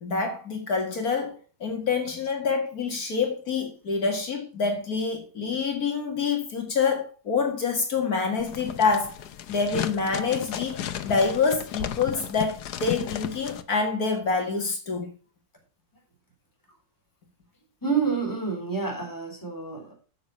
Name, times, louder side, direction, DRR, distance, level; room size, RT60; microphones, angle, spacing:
voice 1, 0.0-9.1 9.5-15.1, left 5 dB, 70° left, 2.4 m, -26 dB
sound 1, 8.4-13.6, left 9 dB, 90° left, 1.4 m, -34 dB
voice 2, 17.8-19.9, right 5 dB, 10° left, 3.8 m, -28 dB
9.4 x 7.1 x 5.9 m
omnidirectional pair, 1.6 m